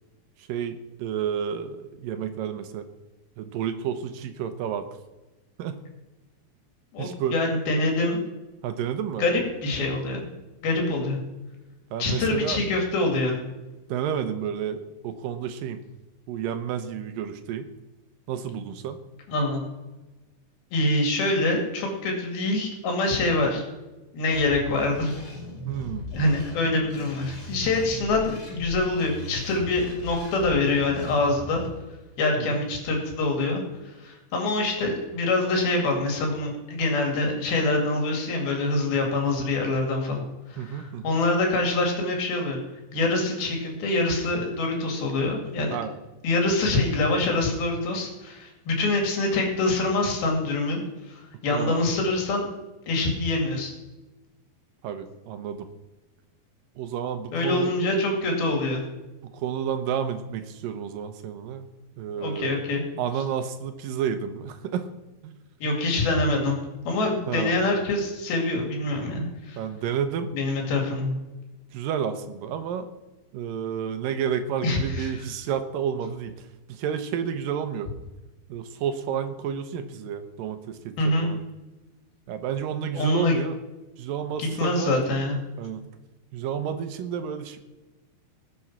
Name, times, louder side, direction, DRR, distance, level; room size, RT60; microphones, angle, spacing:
voice 1, 0.5-2.9 3.4-4.9 5.6-5.8 7.0-7.4 8.6-9.2 11.9-12.6 13.9-15.8 16.3-17.7 18.3-19.0 25.7-26.0 32.4-32.7 40.6-41.2 45.7-46.0 51.5-51.9 54.8-55.7 56.8-57.7 59.3-61.7 62.0-62.6 63.0-64.9 65.2-65.4 67.3-67.6 69.6-70.3 71.7-72.9 73.3-77.9 78.5-80.9 81.2-81.4 82.3-83.6 84.0-84.9 85.6-85.8 86.3-87.6, right 8 dB, 75° right, 8 dB, 2.5 m, -30 dB
voice 2, 6.9-8.2 9.2-10.3 10.6-11.2 12.0-13.4 19.3-19.6 20.7-23.6 24.1-25.1 26.1-31.6 32.2-33.6 34.0-42.6 42.9-45.8 46.2-52.5 52.9-53.7 57.3-58.8 62.2-62.9 65.6-66.6 66.9-69.6 70.3-71.2 74.6-75.3 81.0-81.3 82.9-83.4 84.4-85.4, left 2 dB, 80° left, 1 dB, 4.3 m, -25 dB
sound 1, 24.3-31.7, left 1 dB, 55° left, 5.6 m, -38 dB
19.5 x 7.2 x 6.0 m, 1.1 s
omnidirectional pair, 4.2 m